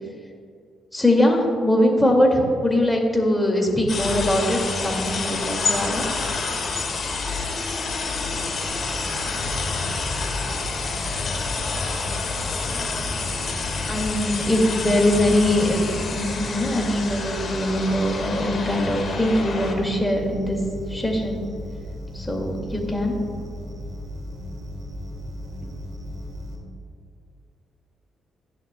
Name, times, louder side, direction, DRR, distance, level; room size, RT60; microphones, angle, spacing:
voice 1, 0.9-6.1 13.9-20.6 20.9-21.4 22.1-23.2, left 1 dB, 10° left, 0 dB, 2.1 m, -22 dB
sound 1, 3.9-19.7, left 4 dB, 50° left, 1.7 m, -28 dB
sound 2, 8.6-26.6, equal, 50° right, 2.2 m, -36 dB
15.5 x 11.0 x 2.2 m, 2.3 s
cardioid pair, 90°, 0 cm